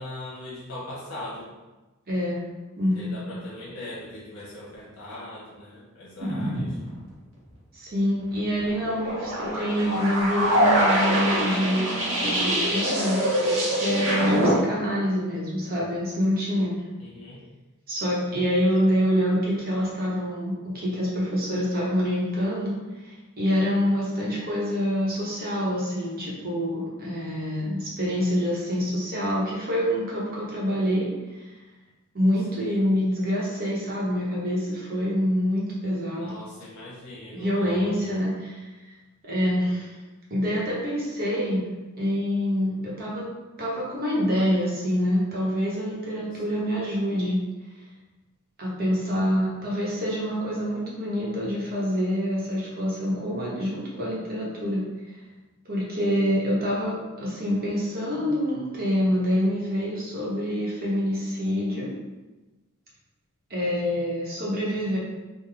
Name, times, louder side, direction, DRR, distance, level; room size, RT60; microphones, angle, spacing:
voice 1, 0.0-1.5 2.9-6.8 17.0-17.4 32.5-32.8 36.1-38.2 39.4-39.7 63.6-64.0, left 1 dB, 80° left, -6 dB, 0.9 m, -40 dB
voice 2, 2.1-2.4 2.8-3.1 6.3-6.4 7.7-11.9 12.2-13.2 13.7-16.8 17.9-22.8 23.0-31.1 31.3-31.6 32.1-36.3 37.3-38.7 39.2-39.9 40.3-41.6 42.0-43.3 43.6-47.4 48.6-54.9 55.6-61.9 63.5-65.0, equal, 45° right, -5 dB, 1.0 m, -26 dB
sound 1, 6.2-7.0 8.6-14.5, equal, 70° right, 1.0 m, -24 dB
3.7 x 2.3 x 3.4 m, 1.1 s
head